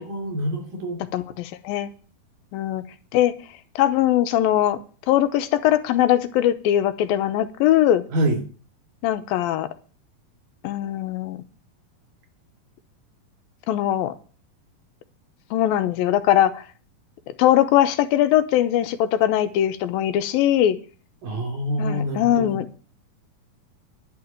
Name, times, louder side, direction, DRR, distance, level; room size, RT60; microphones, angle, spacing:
voice 1, 0.0-1.0 8.1-8.4 21.2-22.6, right 1 dB, 75° right, 2 dB, 5.2 m, -26 dB
voice 2, 1.1-1.9 2.5-2.8 3.1-3.3 3.8-4.8 5.1-8.0 9.0-9.7 10.6-11.4 13.7-14.1 15.5-16.6 17.4-20.8 21.8-22.8, left 12 dB, 90° left, 11 dB, 2.7 m, -21 dB
11.0 x 5.9 x 8.8 m, 0.39 s
omnidirectional pair, 4.1 m